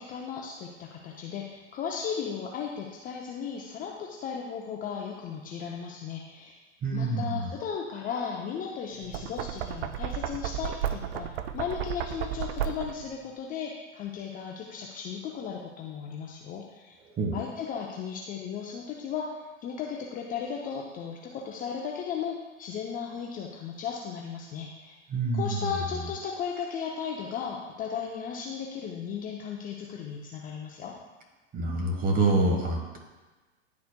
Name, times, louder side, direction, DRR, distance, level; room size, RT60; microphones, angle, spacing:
voice 1, 0.0-6.5 6.9-17.0 17.3-19.3 19.6-24.9 25.3-30.9, left 7 dB, 25° left, -1 dB, 0.6 m, -36 dB
voice 2, 6.8-7.5 17.1-17.4 25.1-25.6 31.5-33.0, right 2 dB, 25° right, 1 dB, 1.3 m, -26 dB
Knock, 9.0-13.1, right 9 dB, 55° right, 0.5 m, -33 dB
10.5 x 4.2 x 2.2 m, 1.2 s
hypercardioid pair, 115°, 37 cm